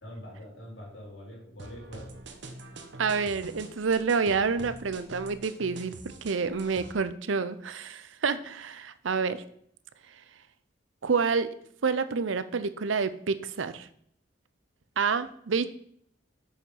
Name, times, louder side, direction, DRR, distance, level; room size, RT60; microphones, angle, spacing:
voice 1, 0.0-2.1 6.3-6.7, equal, 80° left, -3 dB, 4.3 m, -45 dB
sound 1, 1.6-6.9, right 2 dB, 65° right, 1.1 m, -45 dB
voice 2, 3.0-6.0 6.2-9.4 11.0-11.5 11.8-13.9 15.0-15.7, right 5 dB, 90° right, 13 dB, 0.6 m, -28 dB
7.3 x 7.1 x 5.4 m, 0.68 s
head